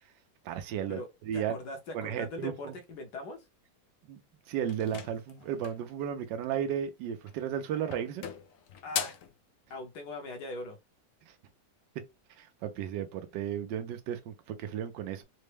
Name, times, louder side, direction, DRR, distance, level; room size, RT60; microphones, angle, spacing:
voice 1, 0.4-1.6 1.9-2.7 4.1-4.2 4.5-8.2 12.4-15.2, right 9 dB, 80° right, 1.3 m, -34 dB
voice 2, 1.3-3.5 8.8-9.2 9.7-10.8, left 2 dB, 65° left, 1.5 m, -41 dB
sound 1, 4.7-5.9 7.2-7.6 7.9-9.4, left 8 dB, 85° left, 0.7 m, -38 dB
4.2 x 2.1 x 3.2 m
omnidirectional pair, 1.9 m